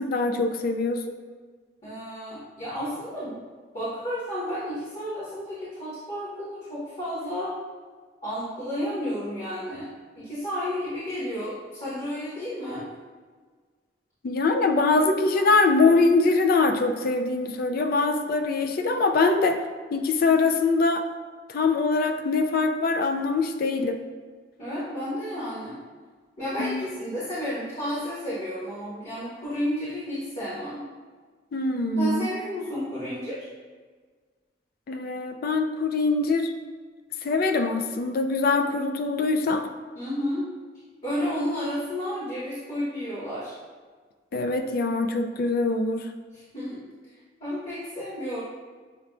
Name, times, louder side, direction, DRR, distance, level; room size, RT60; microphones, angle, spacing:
voice 1, 0.1-1.2 14.2-19.6 19.9-21.0 21.5-24.0 26.6-26.9 31.5-32.3 34.9-36.5 37.2-39.7 44.3-46.1, left 3 dB, 55° left, 6 dB, 0.3 m, -23 dB
voice 2, 1.8-3.4 3.7-7.5 8.2-9.9 10.1-12.8 24.6-25.8 26.4-30.8 31.9-33.5 39.9-40.5 41.0-43.6 46.3-46.8 47.4-48.4, equal, 40° left, -11 dB, 1.2 m, -32 dB
6.6 x 2.4 x 2.3 m, 1.5 s
head